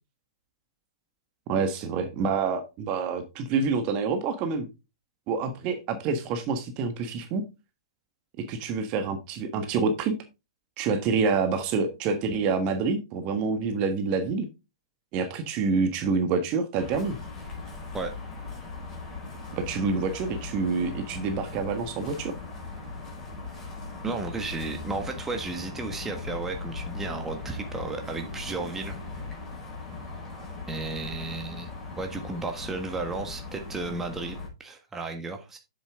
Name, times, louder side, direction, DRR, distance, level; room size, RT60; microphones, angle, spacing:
voice 1, 1.5-4.7 5.3-7.4 8.4-10.2 10.8-14.5 15.1-17.2 19.5-22.3, right 4 dB, 35° right, 8 dB, 1.4 m, -27 dB
sound 1, 16.8-34.5, left 3 dB, 20° left, 4.4 m, -39 dB
voice 2, 24.0-29.0 30.7-35.6, right 3 dB, 10° right, 4 dB, 1.5 m, -34 dB
7.5 x 7.2 x 3.6 m, 0.26 s
hypercardioid pair, 120°, 3 cm